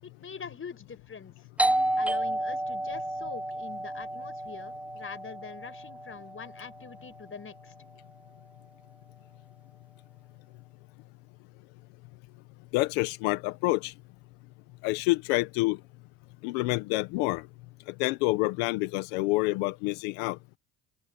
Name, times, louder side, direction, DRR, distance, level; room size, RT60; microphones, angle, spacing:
voice 1, 0.0-1.5 2.0-7.7, left 5 dB, 30° left, 5.9 m, -44 dB
Doorbell, 1.6-7.0, right 1 dB, 5° right, 0.4 m, -31 dB
voice 2, 12.7-13.9 14.8-15.8 16.4-17.4 18.0-20.4, left 21 dB, 90° left, 1.5 m, -27 dB
open air
supercardioid pair, 80°, 41 cm